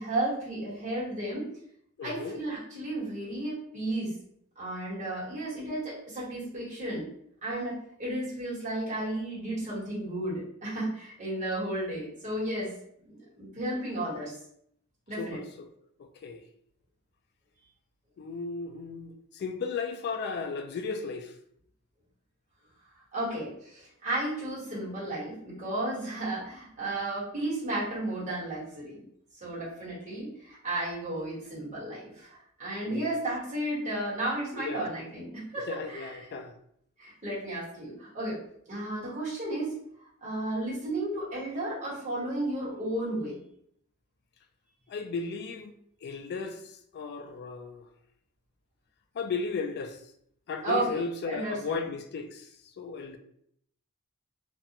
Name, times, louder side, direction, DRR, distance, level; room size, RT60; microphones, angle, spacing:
voice 1, 0.0-1.5 2.0-4.1 4.6-7.0 7.4-12.7 13.0-14.3 15.1-15.4 23.1-29.0 29.4-36.2 37.0-38.4 38.7-39.7 40.2-43.4 50.6-51.8, right 1 dB, 35° right, 1.2 m, -33 dB
voice 2, 2.0-2.4 15.2-15.7 16.2-16.4 18.2-21.3 32.9-33.1 34.6-34.9 35.7-36.6 44.9-45.7 46.0-47.9 49.1-50.0 50.5-53.2, left 4 dB, 50° left, 0.3 m, -35 dB
2.4 x 2.1 x 2.7 m
head